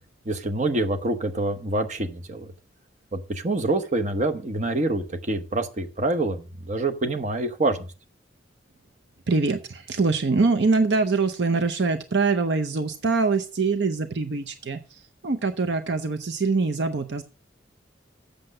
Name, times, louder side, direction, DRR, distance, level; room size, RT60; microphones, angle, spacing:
voice 1, 0.2-2.5 3.1-7.8, right 2 dB, 40° right, 7 dB, 1.0 m, -26 dB
voice 2, 9.3-17.2, right 4 dB, 65° right, 8 dB, 0.7 m, -24 dB
7.9 x 6.6 x 6.4 m, 0.35 s
head